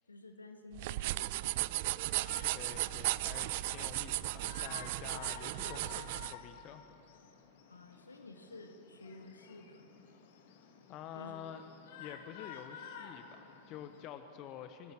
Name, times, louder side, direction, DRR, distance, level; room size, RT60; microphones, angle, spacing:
voice 1, 0.1-1.7 7.7-9.8 11.1-11.6, left 2 dB, 80° left, 5 dB, 1.9 m, -52 dB
sound 1, 0.7-6.3, right 18 dB, 50° right, 0.4 m, -36 dB
Shout, 1.9-14.1, left 7 dB, 55° left, 1.9 m, -53 dB
voice 2, 2.5-6.8 10.9-11.6 12.0-14.9, left 10 dB, 40° left, 9 dB, 0.9 m, -48 dB
24.5 x 16.0 x 7.5 m, 3.0 s
figure-of-eight pair, 90°, 0 cm